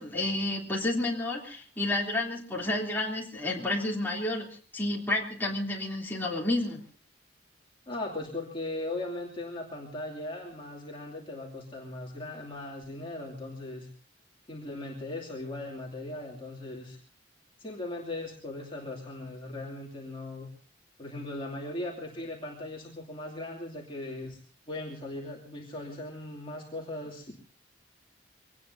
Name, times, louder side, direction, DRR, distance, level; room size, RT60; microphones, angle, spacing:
voice 1, 0.0-4.5 4.7-6.8, left 2 dB, 10° left, -3 dB, 3.3 m, -30 dB
voice 2, 7.9-13.9 14.5-17.0 17.6-20.5 21.0-24.4 24.7-27.3, left 2 dB, 25° left, -2 dB, 2.7 m, -38 dB
24.5 x 19.0 x 2.8 m, 0.42 s
head